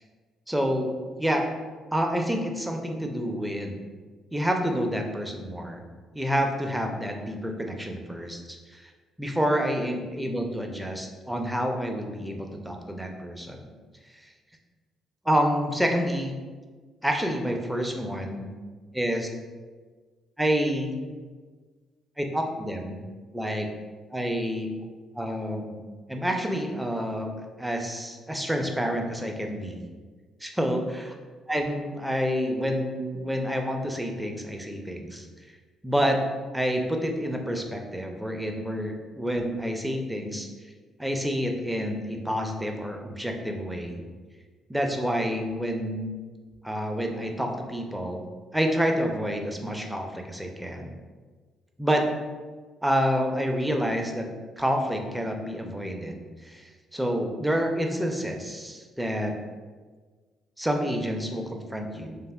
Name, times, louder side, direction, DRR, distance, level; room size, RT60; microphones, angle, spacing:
voice 1, 0.5-0.9 1.2-1.5 1.9-3.8 4.3-5.8 6.1-8.9 9.2-13.7 15.3-16.4 17.0-18.5 18.9-19.3 20.4-21.0 22.2-23.1 23.3-23.7 24.1-24.7 25.2-25.8 26.1-27.3 27.6-29.8 30.4-31.1 31.5-35.3 35.8-36.2 36.5-40.5 41.0-44.0 44.7-46.1 46.6-48.2 48.5-50.9 51.8-52.1 52.8-54.3 54.6-56.2 56.4-56.6 56.9-59.4 60.6-62.2, equal, 5° right, 3 dB, 0.5 m, -28 dB
3.3 x 2.4 x 2.3 m, 1.4 s
hypercardioid pair, 55°, 0 cm